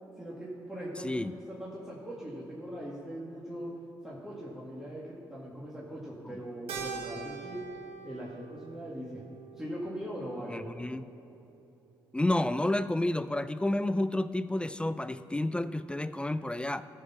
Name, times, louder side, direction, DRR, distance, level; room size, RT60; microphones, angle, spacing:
voice 1, 0.2-3.8 4.0-7.6 8.0-9.2 9.6-10.7, equal, 5° right, -6 dB, 2.0 m, -40 dB
Keyboard (musical), 6.7-11.3, right 5 dB, 75° right, 1.4 m, -44 dB
voice 2, 10.5-11.1 12.1-16.8, left 1 dB, 10° left, 14 dB, 0.4 m, -30 dB
14.0 x 4.7 x 5.8 m, 2.8 s
supercardioid pair, 50°, 10 cm